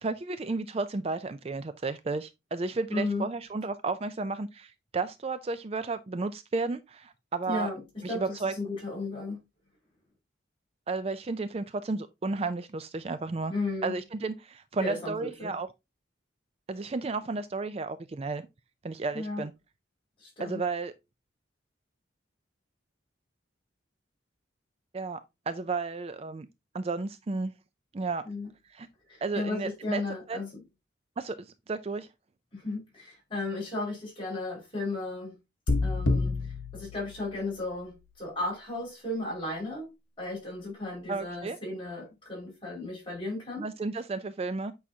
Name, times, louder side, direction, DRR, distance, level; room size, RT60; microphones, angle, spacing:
voice 1, 0.0-7.7 8.0-8.5 10.9-13.5 13.8-15.7 16.7-18.5 18.8-19.5 20.4-20.9 24.9-25.2 25.5-26.5 26.7-27.5 27.9-28.2 28.7-28.9 29.2-30.0 30.3-30.4 31.2-32.1 41.1-41.6 43.6-44.7, right 3 dB, 30° right, 0.4 m, -33 dB
voice 2, 2.9-3.3 7.5-7.8 8.1-9.4 13.5-13.9 14.8-15.6 19.1-19.4 20.2-20.6 28.2-28.5 29.1-30.6 32.5-35.4 35.8-36.4 36.7-39.9 40.2-43.7, left 2 dB, 25° left, 5.2 m, -34 dB
sound 1, 35.7-37.8, left 3 dB, 75° left, 1.1 m, -29 dB
8.6 x 5.6 x 2.7 m
head